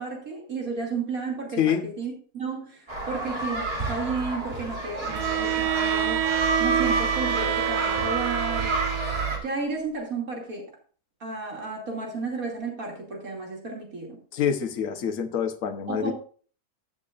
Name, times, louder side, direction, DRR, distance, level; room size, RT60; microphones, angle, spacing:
voice 1, 0.0-8.7 9.4-10.7 11.2-14.2 15.9-16.1, right 4 dB, 60° right, 3.0 m, -33 dB
voice 2, 1.6-1.9 14.3-16.1, left 8 dB, 60° left, 1.4 m, -26 dB
sound 1, 2.9-9.4, right 2 dB, 40° right, 2.5 m, -29 dB
Bowed string instrument, 5.1-9.4, right 10 dB, 85° right, 1.2 m, -27 dB
15.0 x 7.6 x 2.5 m
omnidirectional pair, 1.7 m